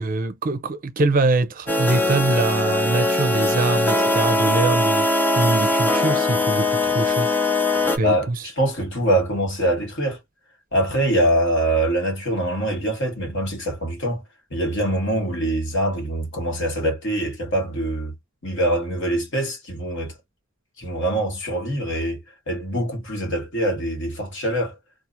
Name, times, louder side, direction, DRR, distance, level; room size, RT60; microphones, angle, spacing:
voice 1, 0.0-5.1 5.3-8.3, right 3 dB, 40° right, 0.5 m, -23 dB
sound 1, 1.7-8.0, left 2 dB, 10° left, 0.4 m, -21 dB
voice 2, 8.0-10.2 10.7-14.2 14.5-18.1 18.4-20.1 20.8-22.2 22.5-24.8, right 1 dB, 60° left, 1.6 m, -24 dB
2.8 x 2.4 x 2.5 m
head